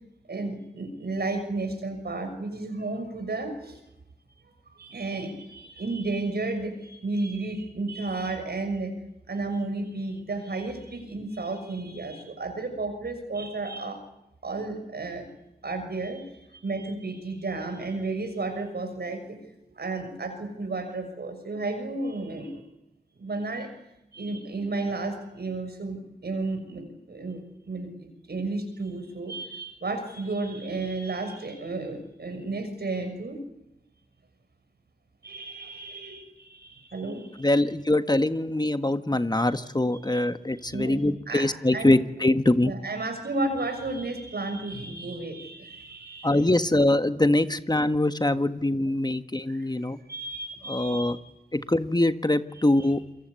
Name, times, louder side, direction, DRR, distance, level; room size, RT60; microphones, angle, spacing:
voice 1, 0.3-3.8 4.8-8.9 9.3-14.0 14.4-15.3 15.6-19.4 19.7-22.6 23.2-23.7 24.1-33.4 35.2-37.5 39.3-39.4 39.9-41.0 41.3-41.5 41.7-42.0 42.6-46.5 48.3-48.4 49.5-51.2 52.5-52.9, right 3 dB, 75° right, 7 dB, 6.4 m, -33 dB
voice 2, 37.4-42.7 46.2-50.0 50.7-51.2 51.5-53.0, left 1 dB, 25° left, 10 dB, 1.5 m, -23 dB
27.5 x 23.0 x 8.3 m, 0.89 s
cardioid pair, 40°, 17 cm